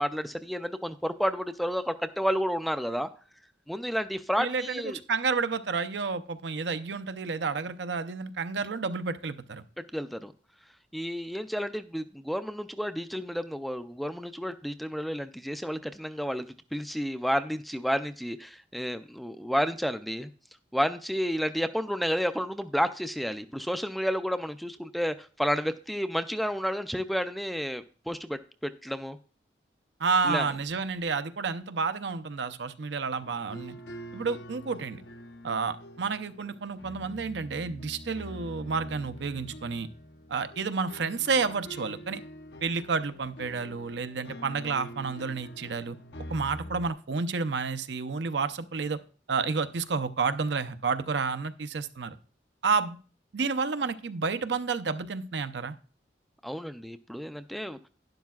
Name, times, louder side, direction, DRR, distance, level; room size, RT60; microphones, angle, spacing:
voice 1, 0.0-3.1 3.7-5.0 9.9-10.3 10.9-20.3 20.7-29.2 30.2-30.5 56.4-57.8, equal, ahead, 10 dB, 0.3 m, -31 dB
voice 2, 4.4-9.6 30.0-33.7 34.1-35.0 35.4-39.9 40.3-42.2 42.6-46.0 46.3-49.0 49.3-52.2 52.6-53.0 53.3-55.7, right 5 dB, 75° right, 11 dB, 0.6 m, -30 dB
sound 1, 33.2-46.9, equal, 75° left, 0.8 m, -45 dB
11.5 x 10.0 x 2.4 m, 0.38 s
head